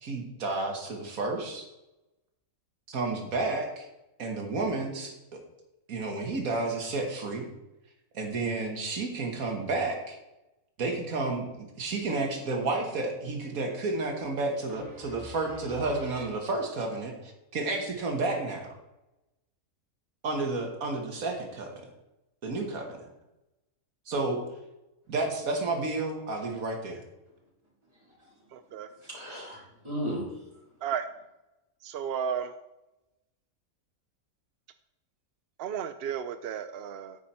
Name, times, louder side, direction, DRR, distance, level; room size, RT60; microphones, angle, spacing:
voice 1, 0.0-1.7 2.9-3.9 4.2-5.4 5.9-7.5 8.1-10.2 10.8-18.7 20.2-21.7 22.4-23.1 24.1-24.4 25.1-27.0, right 3 dB, 85° right, 2 dB, 1.9 m, -31 dB
voice 2, 14.7-15.6 15.9-16.2 28.2-28.3 29.0-30.3, equal, 20° right, -5 dB, 3.7 m, -38 dB
voice 3, 28.5-28.9 30.8-31.0 31.8-32.5 35.6-37.2, right 8 dB, 65° right, 10 dB, 0.6 m, -33 dB
9.6 x 8.4 x 4.3 m, 0.95 s
omnidirectional pair, 1.4 m